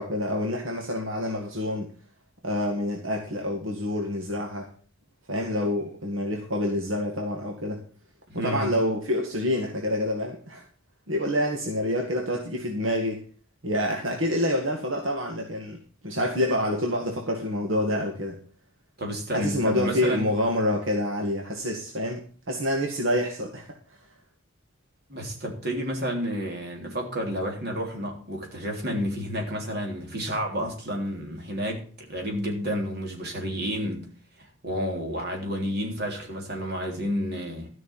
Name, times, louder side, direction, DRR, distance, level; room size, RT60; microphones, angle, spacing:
voice 1, 0.0-1.9 2.4-4.7 5.3-7.8 8.3-10.6 11.1-13.2 13.6-15.8 16.0-18.4 19.3-23.7, left 1 dB, 75° right, 1 dB, 2.0 m, -27 dB
voice 2, 8.3-8.7 19.0-20.2 25.1-34.1 34.4-37.7, equal, 55° right, 1 dB, 3.5 m, -30 dB
13.5 x 6.1 x 7.3 m, 0.42 s
head